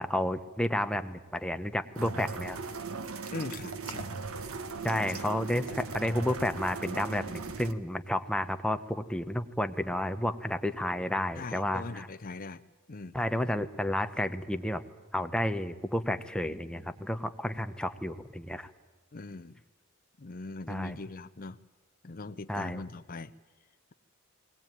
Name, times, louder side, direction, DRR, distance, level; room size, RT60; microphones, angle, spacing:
voice 1, 0.0-2.6 4.8-12.1 13.1-14.8 15.1-18.7 20.7-21.0 22.5-22.8, left 1 dB, 5° left, 0.9 m, -31 dB
sound 1, 1.9-7.7, right 4 dB, 75° right, 1.3 m, -38 dB
voice 2, 3.3-4.1 5.1-5.2 11.3-13.2 19.1-19.6 20.2-21.6 22.0-23.3, left 3 dB, 40° left, 0.7 m, -41 dB
21.0 x 18.0 x 9.1 m
head